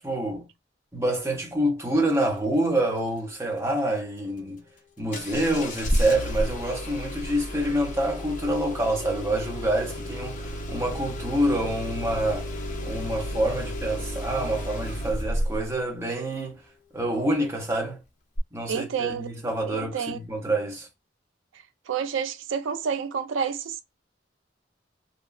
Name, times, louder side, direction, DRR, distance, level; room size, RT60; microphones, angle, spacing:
voice 1, 0.0-0.5 0.9-4.6 5.0-12.5 12.8-16.6 16.9-18.0 18.5-20.9, right 1 dB, 15° right, 0.7 m, -27 dB
Engine starting, 5.1-15.7 18.4-18.5, equal, 40° left, 0.5 m, -32 dB
voice 2, 18.6-19.3 19.7-20.2 21.9-23.8, right 7 dB, 90° right, 0.4 m, -29 dB
2.8 x 2.2 x 2.3 m
head